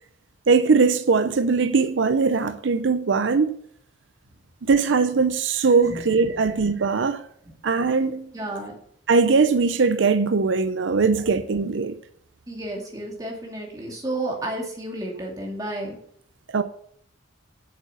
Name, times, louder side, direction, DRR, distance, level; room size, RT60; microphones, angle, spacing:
voice 1, 0.5-3.5 4.6-7.2 7.6-8.3 9.1-12.0 16.5-16.6, right 4 dB, 75° right, 0.6 m, -20 dB
voice 2, 8.3-8.7 12.5-16.0, right 1 dB, 20° right, 2.5 m, -32 dB
8.4 x 7.3 x 6.9 m
head